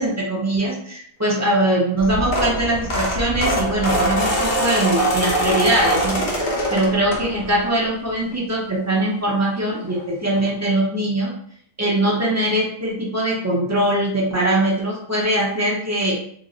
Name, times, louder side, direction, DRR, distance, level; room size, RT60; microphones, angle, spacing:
voice 1, 0.0-6.2 6.7-11.3 11.8-16.1, right 1 dB, 20° right, -4 dB, 0.4 m, -21 dB
sound 1, 2.0-7.6 8.1-8.3 9.6-9.7 9.9-10.0 10.3-10.5, right 1 dB, 50° left, 0.7 m, -23 dB
3.0 x 2.0 x 3.7 m, 0.64 s
omnidirectional pair, 1.3 m